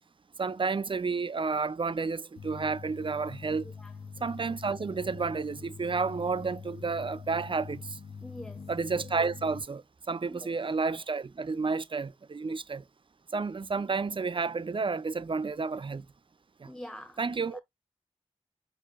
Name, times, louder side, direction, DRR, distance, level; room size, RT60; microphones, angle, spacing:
voice 1, 0.4-3.7 4.2-8.0 8.7-12.8 13.3-16.1 16.6-16.7 17.2-17.6, right 4 dB, 45° right, 0.4 m, -31 dB
sound 1, 2.4-9.6, left 5 dB, 75° left, 0.6 m, -44 dB
voice 2, 3.6-3.9 8.2-8.7 10.3-10.5 16.6-17.6, left 1 dB, 5° left, 0.7 m, -46 dB
6.3 x 2.5 x 2.3 m
wide cardioid pair, 45°, 12 cm